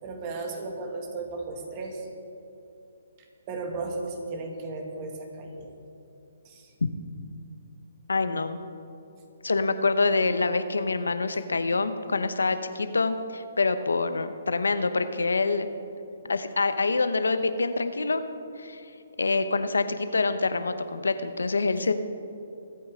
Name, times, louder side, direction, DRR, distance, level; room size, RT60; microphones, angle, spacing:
voice 1, 0.0-2.1 3.2-5.7 6.4-6.7, right 3 dB, 30° right, 2 dB, 2.1 m, -35 dB
voice 2, 8.1-8.6 9.4-15.7 16.3-18.2 18.6-18.8 19.2-21.9, left 3 dB, 90° left, 10 dB, 0.9 m, -26 dB
24.5 x 8.8 x 3.7 m, 2.8 s
hypercardioid pair, 145°, 0 cm